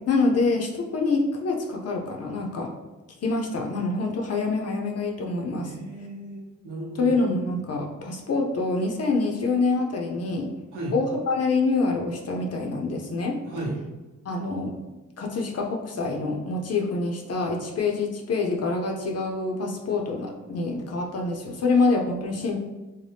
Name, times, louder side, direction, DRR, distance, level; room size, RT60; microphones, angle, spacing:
voice 1, 0.1-2.7 3.2-5.8 7.0-10.5 10.9-13.4 14.2-14.8 15.2-22.6, left 3 dB, 55° left, 1 dB, 0.5 m, -26 dB
voice 2, 5.6-7.2 10.7-11.0 13.4-13.7, right 1 dB, 85° right, -5 dB, 0.8 m, -34 dB
2.7 x 2.1 x 3.3 m, 1.2 s
cardioid pair, 70°, 30 cm